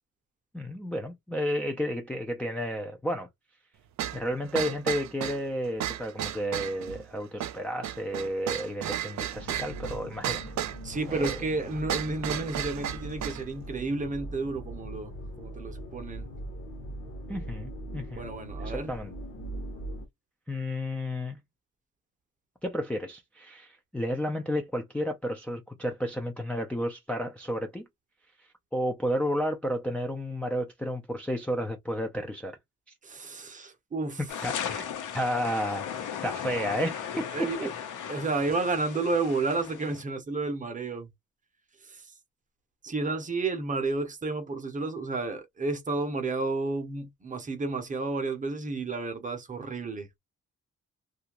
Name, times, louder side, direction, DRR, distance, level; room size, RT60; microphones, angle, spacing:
voice 1, 0.5-3.3 4.1-10.4 11.0-11.3 17.3-18.3 18.6-19.1 20.5-21.4 22.6-27.9 28.7-32.6 34.4-34.9 35.1-37.7, equal, 5° left, 0.4 m, -32 dB
sound 1, 4.0-13.5, right 11 dB, 65° right, 0.5 m, -34 dB
sound 2, 9.3-20.1, equal, 40° left, 0.9 m, -40 dB
voice 2, 10.8-15.1 15.4-16.3 18.1-18.9 33.0-34.2 37.3-37.7 38.1-41.1 41.8-42.1 42.8-50.2, right 3 dB, 25° right, 0.7 m, -31 dB
sound 3, 34.3-40.0, left 8 dB, 75° left, 0.9 m, -37 dB
2.7 x 2.4 x 2.9 m
wide cardioid pair, 180°, 31 cm